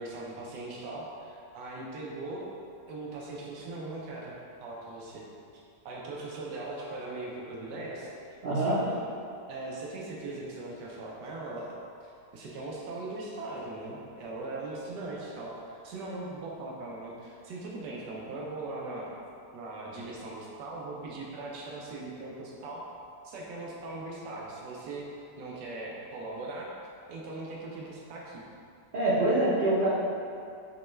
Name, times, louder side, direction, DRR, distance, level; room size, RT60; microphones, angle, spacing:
voice 1, 0.0-2.5 2.9-5.2 5.8-8.1 8.5-9.0 9.5-19.1 19.5-22.8 23.2-26.7 27.1-28.4, right 2 dB, 85° right, -3 dB, 1.3 m, -40 dB
voice 2, 8.4-8.8 28.9-29.9, right 1 dB, 55° right, -12 dB, 0.6 m, -25 dB
5.3 x 2.2 x 3.1 m, 2.5 s
omnidirectional pair, 1.8 m